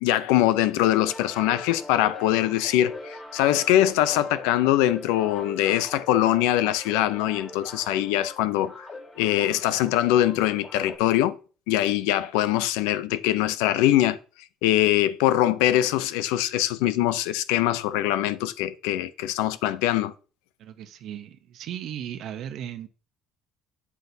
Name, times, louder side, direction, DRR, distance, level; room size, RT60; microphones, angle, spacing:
voice 1, 0.0-8.8 9.2-11.4 11.7-14.2 14.6-20.1, left 13 dB, 90° left, 0.6 m, -23 dB
sound 1, 0.9-11.0, left 2 dB, 35° left, 3.9 m, -42 dB
voice 2, 20.6-22.9, right 10 dB, 65° right, 0.8 m, -36 dB
8.4 x 7.9 x 2.8 m
cardioid pair, 105°, 0 cm